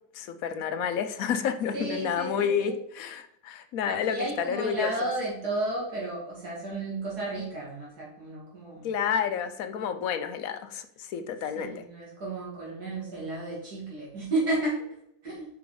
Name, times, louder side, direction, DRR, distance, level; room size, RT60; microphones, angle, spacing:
voice 1, 0.1-4.9 8.8-11.8, left 7 dB, 65° left, 9 dB, 1.1 m, -30 dB
voice 2, 1.7-2.7 3.8-8.9 11.5-14.8 15.2-15.4, right 2 dB, 75° right, -6 dB, 2.8 m, -32 dB
8.2 x 5.8 x 3.9 m, 0.76 s
omnidirectional pair, 1.7 m